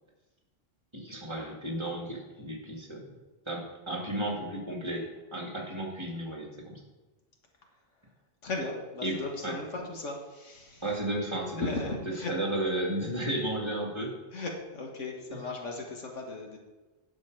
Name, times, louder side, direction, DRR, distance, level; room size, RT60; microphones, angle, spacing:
voice 1, 0.9-3.1 3.5-6.8 9.0-9.2 9.4-9.6 10.8-11.9 12.3-14.2 15.3-15.4, right 1 dB, 25° right, -1 dB, 2.0 m, -33 dB
voice 2, 8.4-10.9 11.5-12.3 14.3-16.6, left 2 dB, 90° left, 1 dB, 1.9 m, -36 dB
10.5 x 6.9 x 4.7 m, 1.2 s
omnidirectional pair, 1.2 m